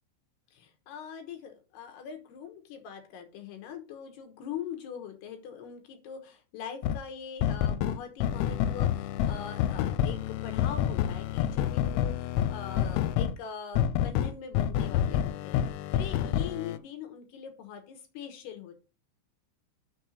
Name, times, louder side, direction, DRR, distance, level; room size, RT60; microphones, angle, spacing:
voice 1, 0.5-18.8, left 8 dB, 70° left, 6 dB, 2.8 m, -42 dB
sound 1, 6.8-7.0 7.4-13.3 13.8-16.8, left 10 dB, 90° left, 3.1 m, -28 dB
6.5 x 4.4 x 6.2 m, 0.31 s
omnidirectional pair, 5.5 m